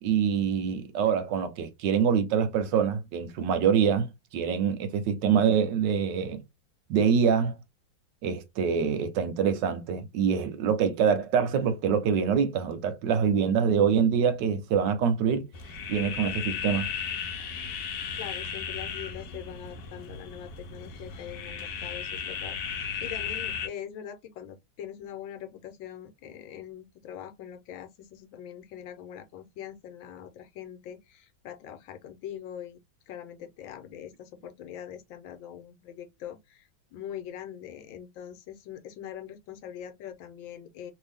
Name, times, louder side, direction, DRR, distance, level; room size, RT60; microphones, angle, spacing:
voice 1, 0.0-6.4 6.9-7.6 8.2-15.5 15.9-16.9, right 7 dB, 75° right, 1.3 m, -25 dB
sound 1, 15.5-23.7, left 7 dB, 65° left, 1.0 m, -35 dB
voice 2, 18.2-32.8 33.1-40.9, left 10 dB, 85° left, 1.5 m, -42 dB
3.1 x 2.7 x 3.4 m
omnidirectional pair, 2.1 m